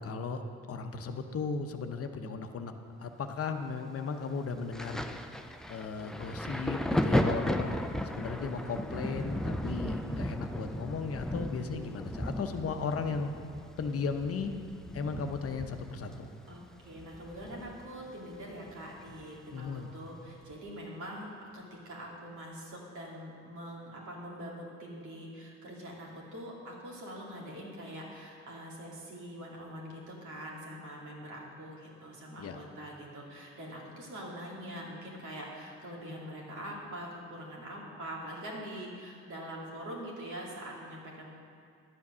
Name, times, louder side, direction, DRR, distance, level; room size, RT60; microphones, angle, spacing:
voice 1, 0.0-2.7 3.0-5.0 5.7-7.8 8.1-13.3 13.8-14.5 14.9-16.3 19.5-19.9 32.4-32.6, left 5 dB, 50° left, 6 dB, 0.8 m, -36 dB
Thunder, 4.7-18.1 18.3-19.7 20.5-20.7, equal, ahead, 0.5 m, -35 dB
voice 2, 16.5-41.4, equal, 75° right, -3 dB, 2.5 m, -44 dB
11.0 x 7.2 x 6.1 m, 2.3 s
cardioid pair, 90°, 30 cm